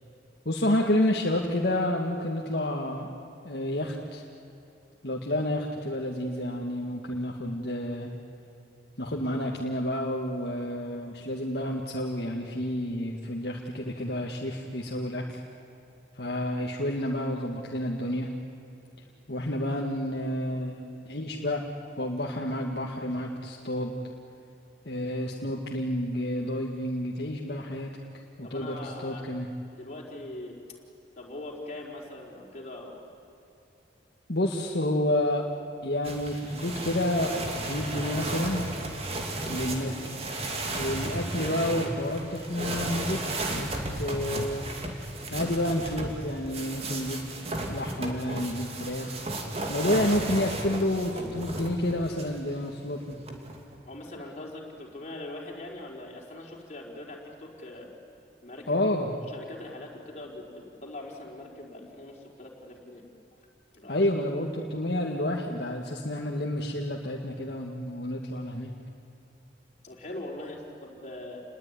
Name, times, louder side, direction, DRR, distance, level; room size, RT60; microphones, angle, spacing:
voice 1, 0.5-3.1 3.4-4.2 5.0-8.1 9.0-15.4 16.2-18.3 19.3-21.6 22.0-23.9 24.9-27.9 28.4-29.5 34.3-35.4 35.8-38.7 39.5-40.2 40.8-43.7 43.9-44.6 45.3-47.3 47.7-49.1 49.7-53.2 58.7-59.1 63.9-68.7, left 1 dB, 60° left, -1 dB, 1.8 m, -29 dB
voice 2, 28.4-29.3 29.7-30.6 31.2-33.0 53.8-57.9 58.4-58.9 59.3-63.0 63.7-64.0 69.8-71.4, left 1 dB, 40° left, -2 dB, 4.6 m, -41 dB
sound 1, 36.0-52.4 53.1-53.8, right 2 dB, 35° right, 2.8 m, -34 dB
29.0 x 20.5 x 9.8 m, 2.8 s
head